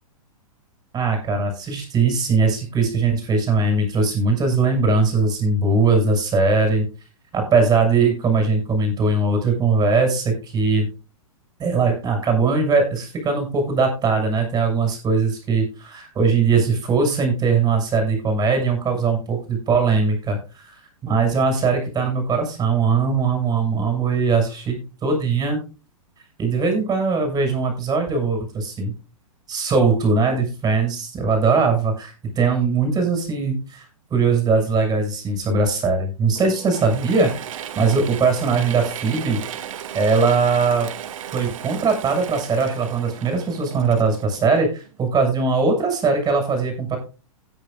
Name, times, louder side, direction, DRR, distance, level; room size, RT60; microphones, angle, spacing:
voice 1, 0.9-6.9 7.3-10.9 11.6-20.7 21.0-25.6 26.4-28.9 29.5-33.8 34.1-39.4 39.9-40.9 41.3-47.0, right 4 dB, 20° right, 4 dB, 6.2 m, -20 dB
Mechanisms / Drill, 36.4-45.0, right 10 dB, 65° right, 1.7 m, -35 dB
16.5 x 9.9 x 2.4 m, 0.31 s
hypercardioid pair, 120°, 18 cm